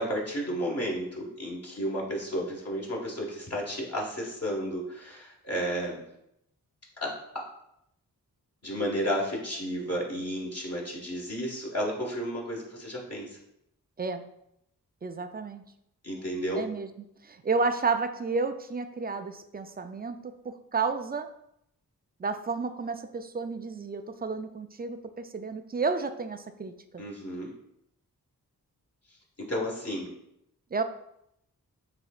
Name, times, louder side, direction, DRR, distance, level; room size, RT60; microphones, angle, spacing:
voice 1, 0.0-6.0 7.0-7.5 8.6-13.4 16.0-16.6 27.0-27.5 29.4-30.1, equal, 40° left, -3 dB, 1.6 m, -32 dB
voice 2, 15.0-15.6 16.5-16.9 17.2-21.3 22.2-27.0 30.7-30.8, right 4 dB, 25° right, 8 dB, 0.4 m, -31 dB
7.4 x 2.7 x 2.4 m, 0.78 s
cardioid pair, 45°, 38 cm